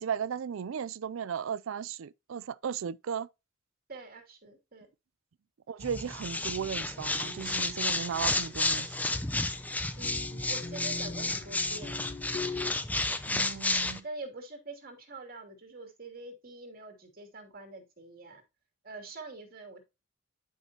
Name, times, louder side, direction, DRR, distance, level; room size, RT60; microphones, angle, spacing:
voice 1, 0.0-3.3 5.7-9.0 13.3-14.0, right 7 dB, 70° right, 0.4 m, -36 dB
voice 2, 3.9-4.9 9.6-9.7 9.9-12.0 13.5-18.4 18.8-19.8, right 2 dB, 45° right, 2.7 m, -45 dB
sound 1, 5.8-14.0, left 2 dB, 10° left, 0.6 m, -32 dB
sound 2, 6.4-12.7, left 3 dB, 30° left, 1.1 m, -43 dB
11.0 x 5.6 x 2.9 m
head